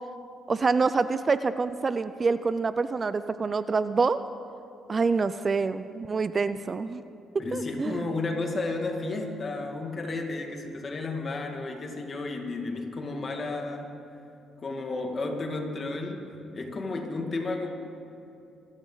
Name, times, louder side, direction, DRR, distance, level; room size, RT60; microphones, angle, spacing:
voice 1, 0.5-4.2 4.9-7.0 7.5-8.0, right 4 dB, 35° right, 13 dB, 0.5 m, -26 dB
voice 2, 7.4-14.0 14.6-16.3 16.5-17.7, left 3 dB, 40° left, 3 dB, 2.2 m, -32 dB
25.0 x 12.5 x 4.0 m, 2.7 s
cardioid pair, 90°, 0 cm